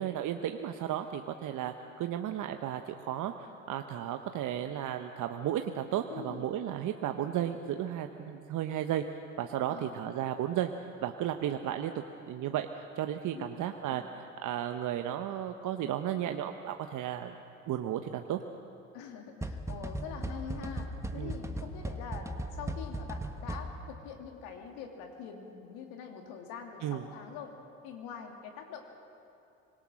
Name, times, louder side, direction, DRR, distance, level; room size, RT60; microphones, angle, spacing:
voice 1, 0.0-10.7 11.0-11.9 12.3-14.0 14.4-17.4 17.7-18.4 21.1-21.3 26.8-27.0, right 11 dB, 50° right, 6 dB, 1.1 m, -34 dB
voice 2, 6.1-6.5 9.7-9.9 13.3-13.5 18.9-27.5 27.8-28.9, left 7 dB, 70° left, 3 dB, 2.9 m, -44 dB
sound 1, 19.4-24.0, right 1 dB, 5° right, 1.5 m, -38 dB
25.5 x 19.5 x 6.4 m, 2.8 s
hypercardioid pair, 70°, 39 cm